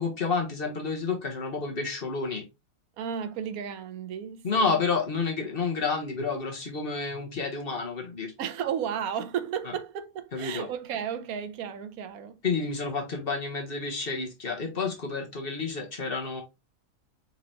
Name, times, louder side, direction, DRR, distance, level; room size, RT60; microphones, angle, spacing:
voice 1, 0.0-2.4 4.4-8.3 10.3-10.6 12.4-16.4, left 4 dB, 45° left, 1.3 m, -30 dB
voice 2, 3.0-4.8 8.4-12.4, right 8 dB, 90° right, 1.1 m, -33 dB
4.4 x 3.9 x 2.8 m
omnidirectional pair, 1.5 m